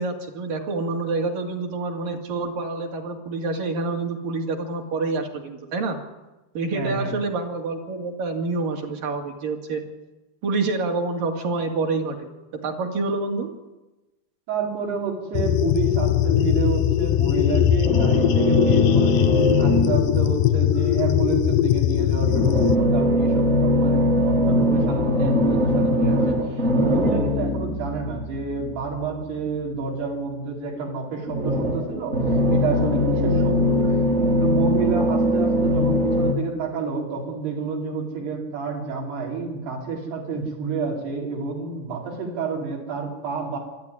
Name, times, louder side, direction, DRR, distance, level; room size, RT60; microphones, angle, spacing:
voice 1, 0.0-6.0 6.6-9.8 10.4-13.5, right 3 dB, 60° right, 2 dB, 3.8 m, -27 dB
voice 2, 6.7-7.1 14.5-33.9 34.4-43.6, right 5 dB, 75° right, -1 dB, 6.4 m, -29 dB
sound 1, 15.3-22.8, left 12 dB, 75° left, 1.9 m, -20 dB
sound 2, 17.8-20.4 22.2-29.3 31.3-36.3, left 1 dB, 30° right, 1.2 m, -21 dB
24.0 x 13.5 x 9.9 m, 1.1 s
omnidirectional pair, 4.6 m